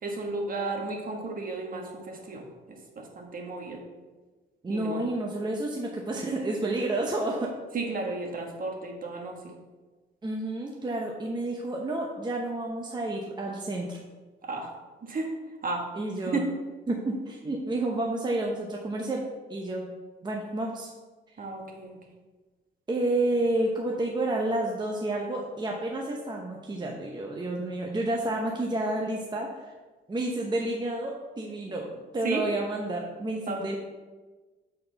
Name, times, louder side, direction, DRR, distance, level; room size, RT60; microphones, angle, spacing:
voice 1, 0.0-2.4 2.7-3.8 4.7-5.1 7.7-9.4 14.4-14.7 15.0-15.3 15.6-15.8 16.2-16.4 21.4-22.0 32.2-32.4 33.5-33.8, right 3 dB, 45° right, 1 dB, 1.4 m, -33 dB
voice 2, 4.6-7.5 10.2-14.0 15.9-16.4 16.9-19.2 19.5-19.9 20.2-20.9 22.9-29.7 30.1-33.8, right 2 dB, 20° right, -1 dB, 0.8 m, -30 dB
7.5 x 4.3 x 4.0 m, 1.3 s
cardioid pair, 90°, 20 cm